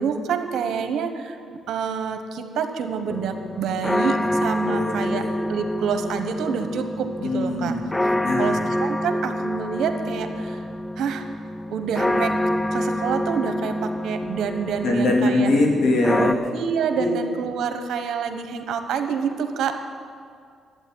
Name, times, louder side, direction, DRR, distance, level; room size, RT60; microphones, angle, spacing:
voice 1, 0.0-1.4 1.7-7.7 8.4-10.6 11.0-11.3 11.7-12.4 12.7-15.5 16.5-19.8, right 6 dB, 75° right, 7 dB, 1.2 m, -27 dB
sound 1, 3.1-16.3, left 1 dB, 10° left, 0.4 m, -27 dB
voice 2, 4.7-5.3 7.2-7.8 8.2-8.6 14.8-16.3 16.9-17.1, left 2 dB, 70° left, -1 dB, 3.1 m, -22 dB
11.5 x 8.9 x 9.4 m, 2.2 s
cardioid pair, 90°, 0 cm